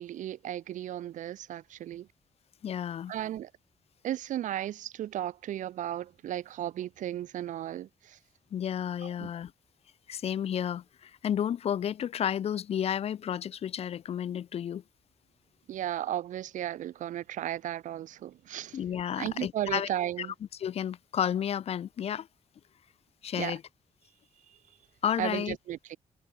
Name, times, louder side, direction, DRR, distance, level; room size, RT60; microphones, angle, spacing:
voice 1, 0.0-2.1 3.1-3.5 4.0-8.2 9.0-9.3 15.7-18.8 19.2-20.3 23.4-23.6 25.2-26.0, right 12 dB, 80° right, 0.8 m, -35 dB
voice 2, 2.6-3.1 8.5-9.5 10.1-14.8 18.7-19.9 20.2-20.3 20.6-22.3 23.2-23.6 25.0-25.6, left 9 dB, 55° left, 0.5 m, -31 dB
wide cardioid pair, 140°, 13 cm